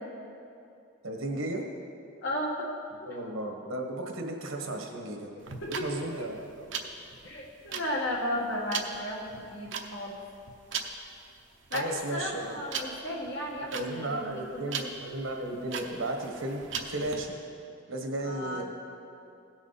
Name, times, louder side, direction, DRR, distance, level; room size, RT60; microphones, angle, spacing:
voice 1, 1.0-1.6 3.1-5.3 5.7-6.7 11.7-12.6 13.7-17.4 17.9-18.6, right 1 dB, 85° right, 2 dB, 1.4 m, -34 dB
voice 2, 2.2-2.5 3.0-3.1 5.6-5.9 7.2-10.2 11.7-14.8 18.2-18.6, left 1 dB, 60° left, -3 dB, 1.8 m, -34 dB
sound 1, 5.4-17.2, right 6 dB, 65° right, 0.8 m, -39 dB
16.5 x 6.0 x 4.1 m, 2.6 s
head